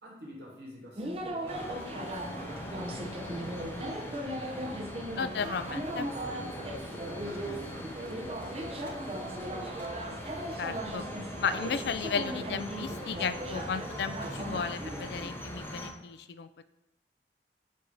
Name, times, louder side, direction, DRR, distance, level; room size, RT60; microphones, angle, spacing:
voice 1, 0.0-4.8 6.1-9.8, equal, 70° right, -4 dB, 1.9 m, -47 dB
sound 1, 1.0-15.3, right 1 dB, 35° right, 0.7 m, -38 dB
sound 2, 1.5-15.9, equal, 15° left, 0.7 m, -42 dB
voice 2, 5.2-6.1 10.6-11.0 11.4-16.5, left 6 dB, 65° left, 12 dB, 0.3 m, -34 dB
7.5 x 2.8 x 5.0 m, 0.98 s
head